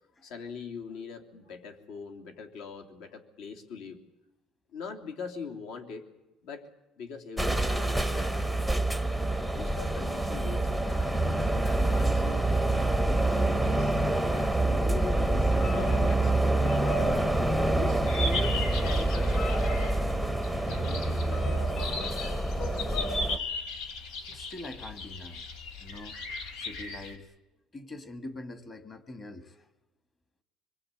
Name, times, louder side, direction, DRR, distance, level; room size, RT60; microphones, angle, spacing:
voice 1, 0.2-4.0 4.7-6.0 6.4-6.7 7.0-8.5 9.5-12.5 12.9-14.0 14.3-17.0 17.7-19.6 20.5-22.2, left 5 dB, 65° left, 5 dB, 3.1 m, -42 dB
sound 1, 7.4-23.4, right 2 dB, 5° left, 0.9 m, -27 dB
Bird vocalization bird call bird song, 15.3-23.3, left 2 dB, 40° left, 4.9 m, -41 dB
sound 2, 18.1-27.2, left 3 dB, 90° left, 3.2 m, -37 dB
voice 2, 24.1-25.5 25.8-26.2 26.6-27.3 27.7-29.6, left 2 dB, 20° left, 10 dB, 1.5 m, -44 dB
26.0 x 21.5 x 8.5 m, 1.0 s
cardioid pair, 180°, 0 cm